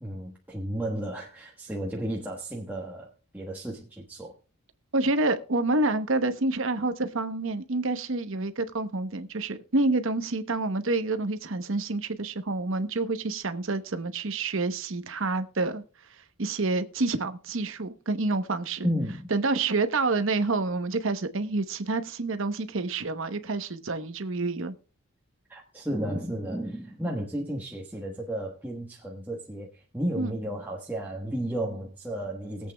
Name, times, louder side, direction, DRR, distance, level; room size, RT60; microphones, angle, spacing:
voice 1, 0.0-4.4 18.8-19.3 25.5-32.7, right 1 dB, 10° right, 1.2 m, -33 dB
voice 2, 4.9-15.8 16.4-18.9 19.3-24.7 30.2-30.3, right 3 dB, 60° right, 0.9 m, -28 dB
20.5 x 8.2 x 2.2 m
head